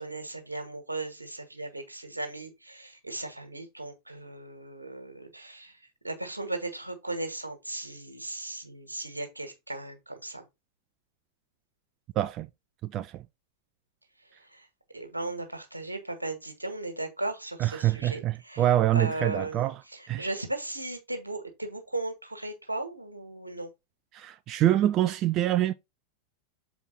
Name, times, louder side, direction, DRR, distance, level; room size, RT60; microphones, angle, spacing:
voice 1, 0.0-10.5 14.2-14.7 14.9-23.7, right 2 dB, 85° right, 1.6 m, -37 dB
voice 2, 12.2-12.5 12.8-13.2 17.6-19.8 20.1-20.3 24.1-25.7, right 13 dB, 35° right, 0.4 m, -25 dB
7.1 x 4.6 x 4.0 m
figure-of-eight pair, 90°, 0 cm